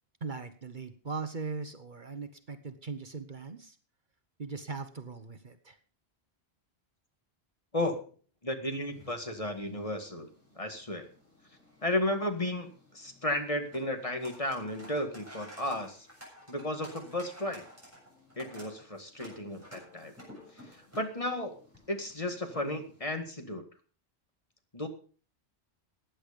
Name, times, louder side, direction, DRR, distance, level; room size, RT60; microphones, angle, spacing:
voice 1, 0.2-3.8 4.4-5.8, right 4 dB, 50° right, 9 dB, 1.2 m, -39 dB
voice 2, 8.4-10.3 10.6-11.1 11.8-16.1 16.5-17.6 18.4-20.1 20.6-21.6 21.9-23.6 24.7-24.9, left 1 dB, 30° left, 5 dB, 2.0 m, -34 dB
sound 1, 8.7-23.2, equal, 15° right, 7.1 m, -53 dB
15.0 x 10.0 x 5.2 m, 0.40 s
omnidirectional pair, 1.1 m